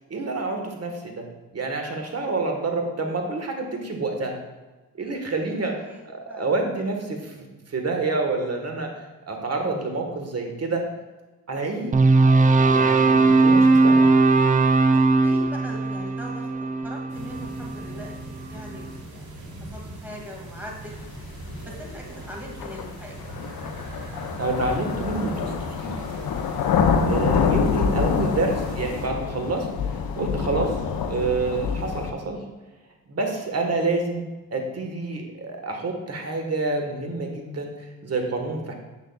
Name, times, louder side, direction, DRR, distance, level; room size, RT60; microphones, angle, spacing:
voice 1, 0.1-1.2 1.5-4.4 5.0-8.9 9.3-10.8 11.5-12.0 12.7-14.1 24.4-25.9 27.1-30.7 31.0-32.4 33.1-34.2 34.5-38.7, right 3 dB, 45° right, 3 dB, 1.5 m, -28 dB
sound 1, 11.9-18.2, right 3 dB, 20° right, 0.4 m, -19 dB
voice 2, 14.9-21.0 21.7-23.5, left 1 dB, 5° right, -2 dB, 2.1 m, -42 dB
sound 2, 17.1-29.1, right 1 dB, 80° right, 1.5 m, -40 dB
sound 3, 21.5-21.6 22.6-32.1, left 6 dB, 75° left, 0.7 m, -26 dB
7.7 x 6.5 x 2.3 m, 1.2 s
cardioid pair, 70°, 36 cm